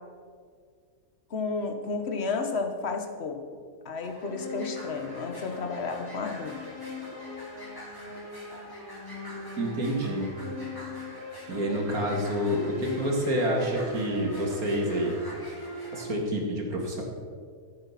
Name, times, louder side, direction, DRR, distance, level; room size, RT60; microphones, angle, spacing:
voice 1, 1.3-3.4 3.8-6.6, left 4 dB, 50° left, 5 dB, 1.5 m, -32 dB
sound 1, 4.0-16.0, left 2 dB, 15° left, 3.1 m, -40 dB
voice 2, 9.6-10.3 11.5-15.2 15.9-17.0, equal, 85° right, 0 dB, 2.7 m, -28 dB
14.5 x 8.5 x 5.8 m, 2.1 s
omnidirectional pair, 1.5 m